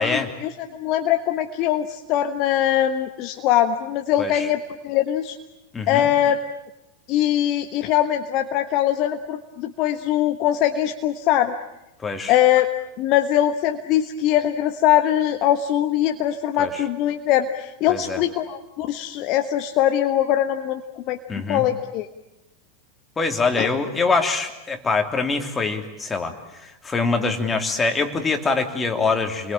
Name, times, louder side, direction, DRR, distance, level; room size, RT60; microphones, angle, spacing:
voice 1, 0.0-5.4 5.9-6.4 7.1-11.5 12.3-12.7 13.0-20.8 21.1-21.2 21.5-22.1 23.6-23.7, left 11 dB, 40° left, 7 dB, 1.3 m, -22 dB
voice 2, 5.7-6.1 12.0-12.3 16.6-16.8 17.9-18.2 21.3-21.6 23.2-26.3 26.6-29.5, left 4 dB, 15° left, 5 dB, 3.1 m, -24 dB
29.5 x 22.5 x 8.8 m, 0.91 s
figure-of-eight pair, 90°, 0 cm